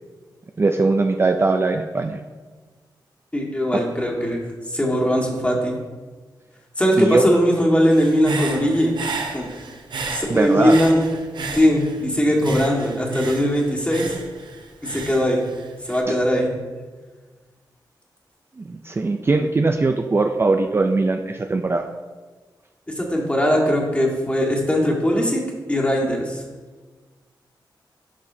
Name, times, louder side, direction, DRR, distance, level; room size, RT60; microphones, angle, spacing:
voice 1, 0.6-2.2 7.0-7.2 10.3-10.8 16.1-16.2 18.6-21.9, right 3 dB, 30° right, 6 dB, 0.4 m, -20 dB
voice 2, 3.3-4.4 4.7-5.7 6.8-8.9 9.3-9.5 10.1-11.0 11.5-14.1 14.8-15.4 15.8-16.5 23.0-25.4 25.7-26.4, equal, 15° left, -1 dB, 1.7 m, -20 dB
Human voice / Breathing, 7.9-12.1 12.4-16.0, right 3 dB, 75° right, 0.9 m, -32 dB
11.5 x 4.8 x 2.7 m, 1.4 s
cardioid pair, 75°, 8 cm